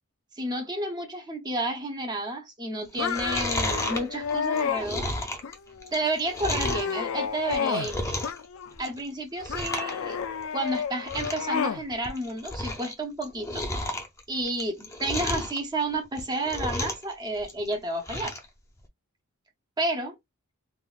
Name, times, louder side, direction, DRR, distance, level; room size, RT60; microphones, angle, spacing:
voice 1, 0.4-5.1 5.9-8.1 8.8-10.2 10.5-13.6 14.3-18.3 19.8-20.1, right 2 dB, 20° right, 0.8 m, -31 dB
Chewing mastication, 2.9-6.9 7.4-8.4 8.7-9.1 9.4-9.9 10.2-10.3 10.7-10.8 11.0-11.5 11.9-12.9 13.2-15.6 16.1-17.1 17.4-18.5 18.8-18.9, left 1 dB, 15° left, 0.6 m, -32 dB
sound 1, 3.0-4.9 5.4-5.9 6.3-7.9 8.2-8.9 9.5-11.8, left 6 dB, 65° left, 0.4 m, -31 dB
3.7 x 2.3 x 2.5 m
head